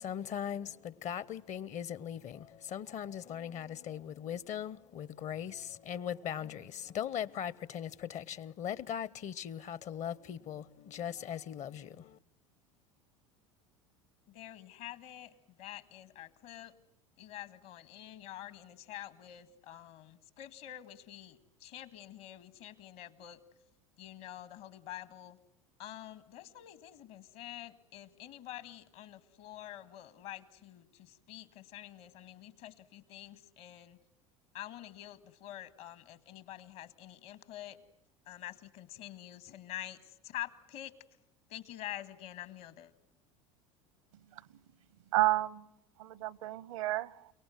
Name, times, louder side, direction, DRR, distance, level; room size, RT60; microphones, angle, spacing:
voice 1, 0.0-12.2, left 9 dB, 45° left, 1.0 m, -39 dB
voice 2, 14.3-16.7 17.2-23.4 24.0-25.4 25.8-34.0 34.5-37.8 38.3-40.9 41.5-42.9, left 13 dB, 60° left, 1.9 m, -47 dB
voice 3, 45.1-45.7 46.0-47.3, right 17 dB, 75° right, 0.9 m, -31 dB
29.5 x 19.0 x 9.3 m
hypercardioid pair, 80°, 17 cm